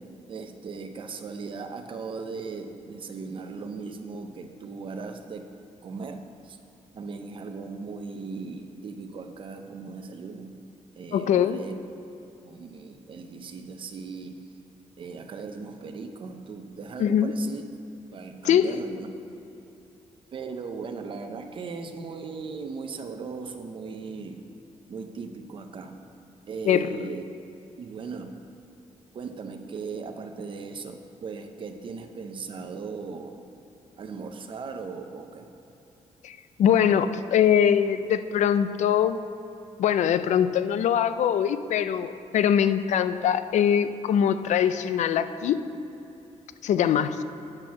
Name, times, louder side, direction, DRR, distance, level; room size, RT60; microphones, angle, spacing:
voice 1, 0.0-5.5 5.8-6.6 6.9-10.6 11.0-11.7 12.4-14.4 15.0-17.6 18.1-19.1 20.3-24.4 24.9-26.0 26.5-27.3 27.8-28.5 29.1-33.4 34.0-35.5, right 4 dB, 40° right, 6 dB, 0.6 m, -38 dB
voice 2, 11.1-11.6 17.0-17.3 18.4-18.8 26.7-27.2 36.2-39.2 39.8-45.6 46.6-47.2, left 9 dB, 70° left, 12 dB, 0.4 m, -22 dB
8.8 x 6.0 x 6.2 m, 2.9 s
wide cardioid pair, 165°, 13 cm